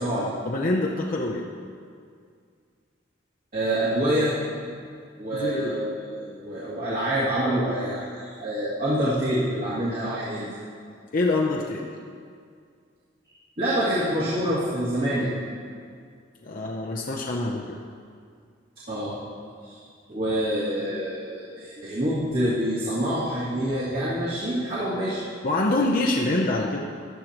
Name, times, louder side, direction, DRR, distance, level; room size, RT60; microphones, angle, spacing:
voice 1, 0.4-1.5 5.3-5.8 11.1-11.9 16.4-17.8 25.4-26.9, left 2 dB, 45° left, -1 dB, 0.6 m, -25 dB
voice 2, 3.5-4.3 5.2-10.5 13.6-15.3 18.9-19.3 19.6-19.8 20.1-25.2, right 1 dB, 50° right, -10 dB, 2.2 m, -26 dB
14.5 x 10.5 x 3.0 m, 2.2 s
head